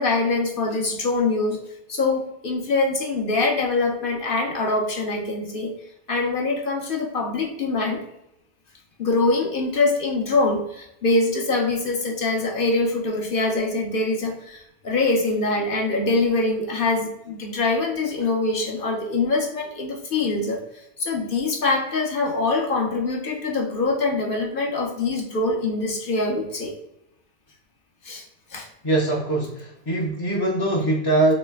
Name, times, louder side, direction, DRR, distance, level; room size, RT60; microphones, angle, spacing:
voice 1, 0.0-1.6 1.9-5.7 6.1-8.0 9.0-26.8 28.0-28.2 28.5-28.7, left 3 dB, 55° left, 1 dB, 0.8 m, -24 dB
voice 2, 28.8-31.3, right 2 dB, 30° left, -3 dB, 0.4 m, -22 dB
3.1 x 3.0 x 3.3 m, 0.83 s
omnidirectional pair, 1.1 m